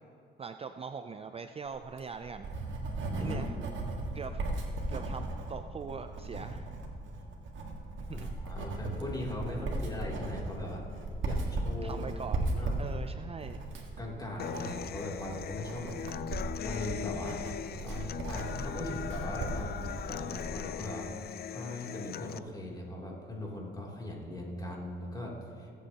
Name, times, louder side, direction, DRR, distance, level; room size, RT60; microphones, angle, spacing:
voice 1, 0.4-2.5 3.2-3.5 4.1-6.7 8.1-8.3 9.5-9.6 11.8-13.8, right 5 dB, 30° right, 8 dB, 0.4 m, -42 dB
Writing, 1.8-20.6, right 2 dB, 70° right, 1.7 m, -37 dB
voice 2, 3.0-3.5 8.1-10.8 11.2-12.1 12.5-12.7 14.0-17.4 17.8-21.1 21.5-25.7, left 1 dB, 20° left, -3 dB, 3.0 m, -40 dB
Human voice / Acoustic guitar, 14.4-22.4, left 10 dB, 55° left, 0.4 m, -40 dB
20.5 x 8.3 x 2.9 m, 2.6 s
cardioid pair, 90°, 20 cm